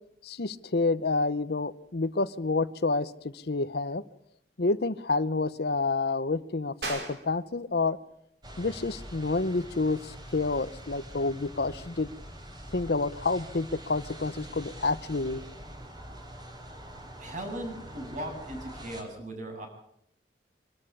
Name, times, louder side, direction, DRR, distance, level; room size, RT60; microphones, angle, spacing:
voice 1, 0.2-4.0 4.6-8.0 8.6-12.1 12.7-15.4, left 3 dB, 65° left, 15 dB, 0.8 m, -29 dB
sound 1, 6.8-17.0, right 2 dB, 75° right, 5.6 m, -47 dB
sound 2, 8.4-19.0, right 1 dB, 25° right, 3.7 m, -45 dB
voice 2, 17.2-19.7, right 1 dB, 45° right, 3 dB, 7.3 m, -38 dB
24.5 x 13.0 x 8.5 m, 0.74 s
head